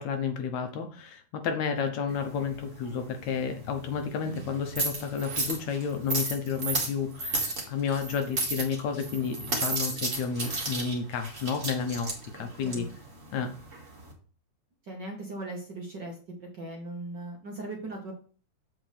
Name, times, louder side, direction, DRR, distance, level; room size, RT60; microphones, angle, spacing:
voice 1, 0.0-12.1 12.4-12.9 13.3-13.5, left 6 dB, 70° left, 6 dB, 2.0 m, -31 dB
sound 1, 2.1-14.1, right 2 dB, 30° right, 2.0 m, -34 dB
voice 2, 14.9-18.1, right 2 dB, 45° right, 0 dB, 1.6 m, -39 dB
8.0 x 7.1 x 3.4 m, 0.39 s
omnidirectional pair, 3.6 m